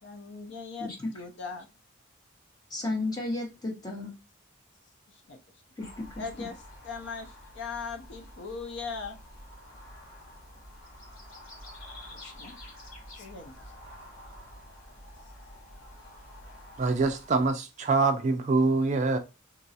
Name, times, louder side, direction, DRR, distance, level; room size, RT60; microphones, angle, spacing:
voice 1, 0.0-1.7 5.1-5.4 6.2-9.2 12.1-12.6 13.2-13.5, left 4 dB, 55° left, 0.5 m, -40 dB
voice 2, 0.8-1.1 2.7-4.1 5.8-6.5, left 2 dB, 20° left, 0.8 m, -33 dB
sound 1, 5.8-17.5, left 1 dB, 85° left, 1.8 m, -48 dB
voice 3, 16.8-19.2, right 3 dB, 35° right, 0.3 m, -25 dB
3.9 x 2.3 x 2.6 m
head